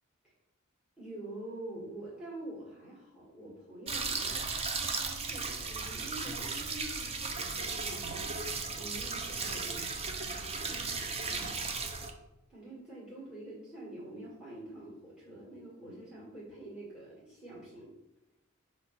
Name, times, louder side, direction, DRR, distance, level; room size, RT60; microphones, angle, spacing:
voice 1, 1.0-4.6 5.0-8.3 8.8-9.8 10.3-11.6 12.5-17.9, right 1 dB, 5° right, -8 dB, 2.0 m, -46 dB
sound 1, 3.9-12.1, right 4 dB, 30° right, 0.6 m, -36 dB
6.2 x 3.1 x 5.7 m, 0.94 s
head